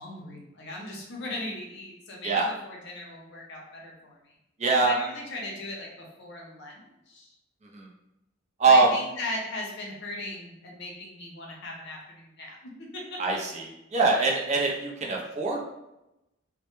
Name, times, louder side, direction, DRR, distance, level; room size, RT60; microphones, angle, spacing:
voice 1, 0.0-4.4 4.8-7.3 8.6-13.4, left 2 dB, 60° left, -1 dB, 0.6 m, -38 dB
voice 2, 4.6-5.0 7.7-7.9 8.6-8.9 13.2-15.6, right 3 dB, 35° right, -1 dB, 0.5 m, -23 dB
2.1 x 2.1 x 2.9 m, 0.90 s
head